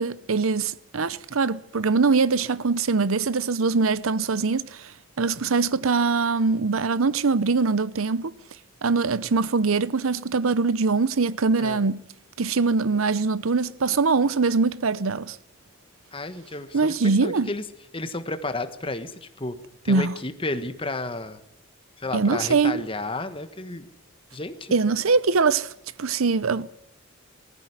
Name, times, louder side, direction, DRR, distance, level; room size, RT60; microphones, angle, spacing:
voice 1, 0.0-4.9 5.2-8.3 8.8-12.0 12.4-15.4 16.7-17.5 19.9-20.1 22.1-22.8 24.7-25.7 26.0-26.7, right 4 dB, 80° right, 0.7 m, -22 dB
voice 2, 16.1-17.6 17.9-19.6 19.8-21.4 22.0-23.9 24.3-24.7, left 2 dB, 25° left, 1.4 m, -32 dB
20.0 x 14.5 x 9.7 m
head